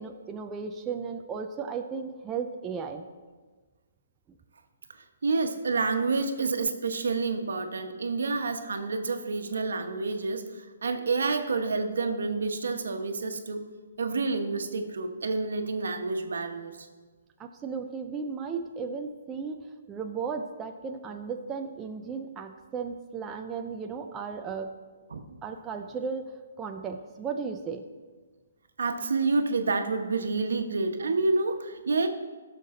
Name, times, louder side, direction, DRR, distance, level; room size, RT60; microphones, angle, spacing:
voice 1, 0.0-3.0 17.4-24.7 25.4-27.8, right 5 dB, 10° right, 4 dB, 0.3 m, -35 dB
voice 2, 5.2-13.7 14.0-16.9 25.1-25.4 28.8-32.1, right 3 dB, 75° right, 6 dB, 1.1 m, -28 dB
15.5 x 6.6 x 3.8 m, 1.4 s
hypercardioid pair, 175°, 0 cm